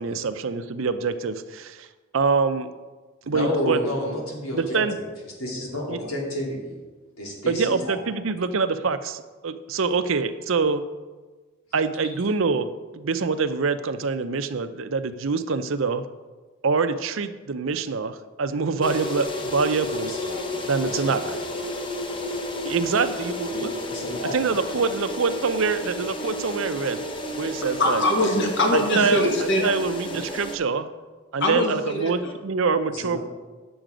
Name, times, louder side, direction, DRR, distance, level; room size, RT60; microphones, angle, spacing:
voice 1, 0.0-1.9 2.1-2.7 3.3-3.8 4.5-4.9 5.9-6.0 7.5-10.8 11.7-16.0 16.6-20.1 20.6-21.2 22.6-23.7 24.3-27.0 27.4-28.0 29.0-29.3 29.6-30.9 31.3-33.2, right 4 dB, 65° right, 11 dB, 0.5 m, -25 dB
voice 2, 3.2-5.1 5.4-6.8 7.2-7.9 20.1-21.3 23.4-24.5 28.1-28.3 32.9-33.2, left 1 dB, 85° left, -2 dB, 2.8 m, -31 dB
sound 1, 18.8-30.6, left 1 dB, 25° left, 0.7 m, -32 dB
voice 3, 27.8-29.7 31.4-32.3, left 1 dB, 55° left, 1 dB, 1.6 m, -22 dB
9.0 x 7.0 x 5.0 m, 1.3 s
head